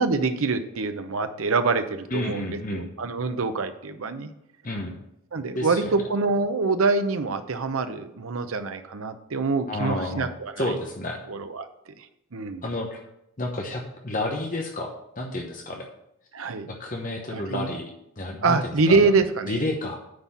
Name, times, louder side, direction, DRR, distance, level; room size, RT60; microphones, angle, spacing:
voice 1, 0.0-4.3 5.3-10.7 11.3-11.7 12.0-12.1 12.3-12.7 16.3-16.7 17.3-17.7 18.4-19.6, right 4 dB, 70° right, 9 dB, 0.7 m, -25 dB
voice 2, 2.1-2.9 4.6-5.0 5.6-5.9 9.7-10.3 10.6-11.2 12.6-13.0 13.4-15.9 16.7-19.1 19.5-20.0, left 1 dB, 35° left, 1 dB, 0.9 m, -30 dB
9.6 x 4.1 x 7.3 m, 0.80 s
head